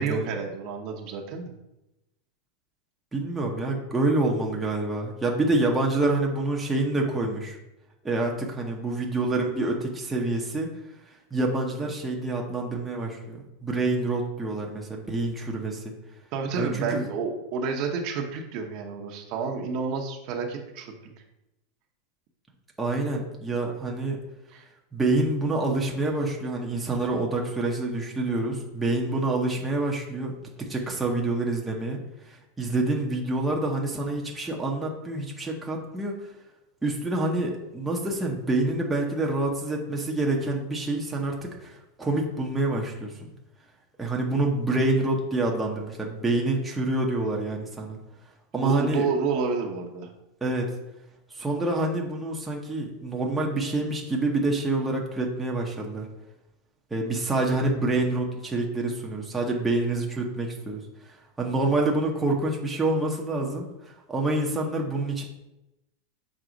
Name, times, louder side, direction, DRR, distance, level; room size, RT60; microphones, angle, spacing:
voice 1, 0.0-1.5 16.3-20.9 24.5-24.6 48.5-50.1, right 5 dB, 45° right, 2 dB, 0.9 m, -29 dB
voice 2, 3.1-7.6 8.0-10.7 11.3-15.9 16.6-17.0 22.8-24.2 24.9-32.0 32.2-36.2 36.8-43.3 44.0-48.0 48.5-49.1 50.4-50.7 51.3-56.1 56.9-60.8 61.4-63.7 64.1-65.2, right 2 dB, 10° right, -2 dB, 0.8 m, -27 dB
6.2 x 4.1 x 3.9 m, 0.94 s
supercardioid pair, 155°, 0 cm